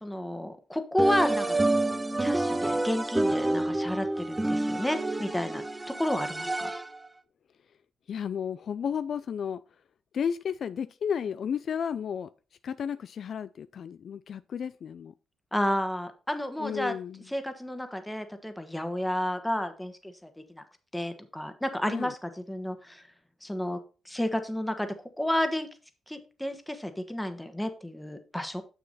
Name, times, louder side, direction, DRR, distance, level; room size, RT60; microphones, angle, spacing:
voice 1, 0.0-1.6 2.2-5.6 6.0-6.7 15.5-17.0 17.3-20.6 20.9-23.0 23.4-23.8 24.0-24.9 25.2-25.7 26.1-28.6, left 1 dB, 5° left, 1.4 m, -31 dB
sound 1, 1.0-7.1, right 2 dB, 15° right, 0.7 m, -28 dB
voice 2, 8.1-9.6 10.1-12.3 12.6-15.1 16.6-17.3 21.9-22.1, left 7 dB, 60° left, 0.3 m, -33 dB
6.9 x 6.4 x 4.1 m
supercardioid pair, 55°, 0 cm